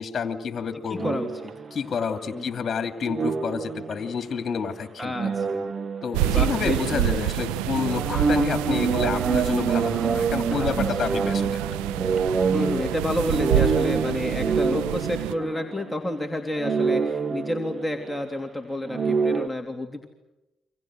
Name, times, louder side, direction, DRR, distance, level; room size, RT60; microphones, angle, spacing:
voice 1, 0.0-1.1 1.7-5.3 6.0-11.6, left 6 dB, 45° left, 7 dB, 2.7 m, -29 dB
voice 2, 0.9-1.5 2.3-2.4 5.0-5.6 6.3-7.2 10.5-10.8 11.1-11.3 12.5-20.1, left 1 dB, 10° left, 3 dB, 3.2 m, -30 dB
sound 1, 1.0-1.9 3.0-4.3 5.0-6.8 7.1-7.2 7.7-16.2 16.5-18.2 18.9-19.5, right 5 dB, 40° right, 1.4 m, -27 dB
sound 2, 6.1-15.3, right 13 dB, 85° right, 1.0 m, -28 dB
29.0 x 26.0 x 6.4 m, 1.0 s
hypercardioid pair, 55°, 0 cm